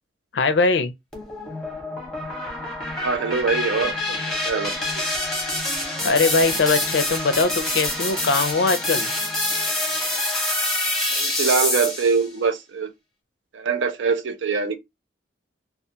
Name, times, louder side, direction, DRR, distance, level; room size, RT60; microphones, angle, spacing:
voice 1, 0.3-0.9 6.0-9.1, left 4 dB, 70° left, 0.4 m, -21 dB
sound 1, 1.1-12.2, left 1 dB, 5° left, 0.7 m, -26 dB
voice 2, 2.9-5.2 11.1-12.9 13.5-14.8, right 5 dB, 80° right, 0.5 m, -24 dB
2.4 x 2.3 x 2.7 m
head